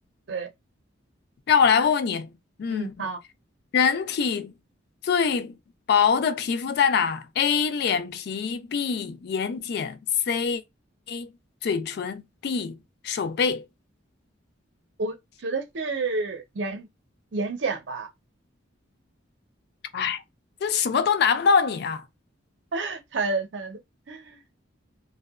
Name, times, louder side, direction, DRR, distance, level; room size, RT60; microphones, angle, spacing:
voice 1, 1.5-2.3 2.6-3.1 3.7-4.5 5.0-5.5 5.9-10.0 10.3-10.6 11.1-11.3 11.6-12.7 13.0-13.6 19.9-20.2 20.6-22.0, left 6 dB, 55° left, 0.3 m, -24 dB
voice 2, 2.7-3.2 15.0-15.2 15.4-16.9 17.3-18.1 22.7-23.8 24.1-24.4, right 3 dB, 65° right, 0.6 m, -29 dB
2.6 x 2.1 x 2.4 m
head